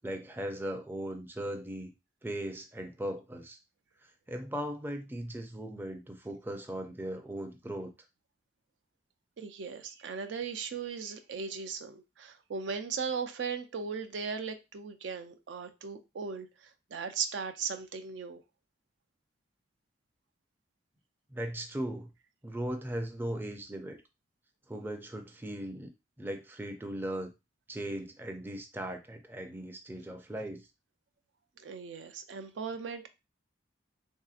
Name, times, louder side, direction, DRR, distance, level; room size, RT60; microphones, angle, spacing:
voice 1, 0.0-1.9 2.2-3.6 4.3-7.9 21.3-22.1 22.4-24.0 24.7-25.9 26.2-27.3 27.7-30.7, right 1 dB, 10° right, 0.4 m, -38 dB
voice 2, 9.4-16.5 16.9-18.4 31.6-33.1, right 5 dB, 80° right, 0.4 m, -37 dB
3.2 x 2.7 x 2.4 m
head